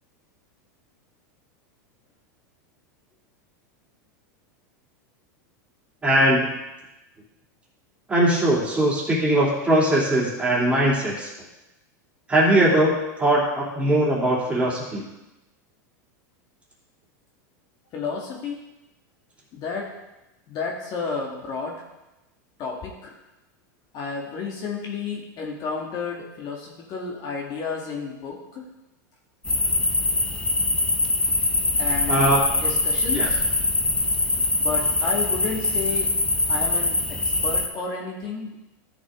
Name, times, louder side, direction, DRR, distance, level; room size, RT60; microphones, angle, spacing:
voice 1, 6.0-6.5 8.1-11.3 12.3-15.0 32.1-32.4 33.1-33.3, right 1 dB, 15° right, -5 dB, 3.2 m, -20 dB
voice 2, 17.9-18.7 19.5-19.9 20.5-21.8 22.6-23.2 23.9-28.6 31.8-33.4 34.6-36.1 36.5-38.5, left 4 dB, 45° left, -1 dB, 2.1 m, -31 dB
sound 1, 29.4-37.7, left 2 dB, 10° left, 0.9 m, -23 dB
13.5 x 6.4 x 3.8 m, 0.98 s
supercardioid pair, 120°, 10 cm